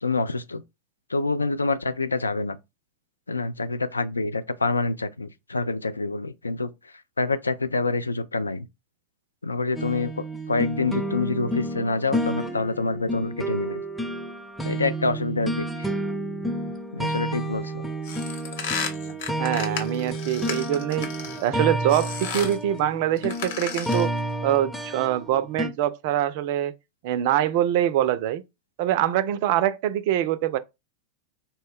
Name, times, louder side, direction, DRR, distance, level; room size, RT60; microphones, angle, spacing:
voice 1, 0.0-0.6 1.1-2.6 3.3-8.7 9.4-13.8 14.6-15.9 16.9-17.8, left 3 dB, 80° left, 0.3 m, -27 dB
sound 1, 9.8-25.7, right 1 dB, ahead, 0.5 m, -30 dB
sound 2, 18.0-21.5 21.9-22.6 23.2-24.2, left 6 dB, 55° left, 1.0 m, -33 dB
voice 2, 19.3-21.1 21.4-24.1 24.4-26.7 27.0-28.4 28.8-30.6, right 12 dB, 50° right, 0.3 m, -24 dB
4.1 x 2.1 x 3.3 m
figure-of-eight pair, 90°, 0 cm